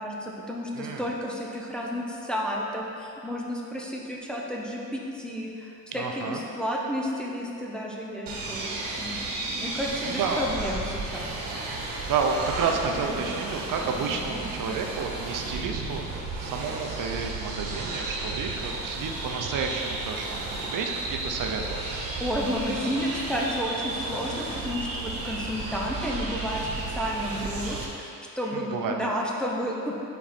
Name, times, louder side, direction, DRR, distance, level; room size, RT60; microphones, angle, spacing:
voice 1, 0.0-9.2 9.6-11.4 22.2-26.6 26.9-30.0, equal, 5° left, -3 dB, 0.6 m, -31 dB
voice 2, 0.7-1.1 5.9-6.4 10.0-10.4 12.1-21.8 28.5-29.1, right 5 dB, 65° right, 2 dB, 0.6 m, -31 dB
sound 1, 8.3-27.8, right 2 dB, 85° right, 1.1 m, -33 dB
5.8 x 4.4 x 4.2 m, 2.7 s
cardioid pair, 115°, 34 cm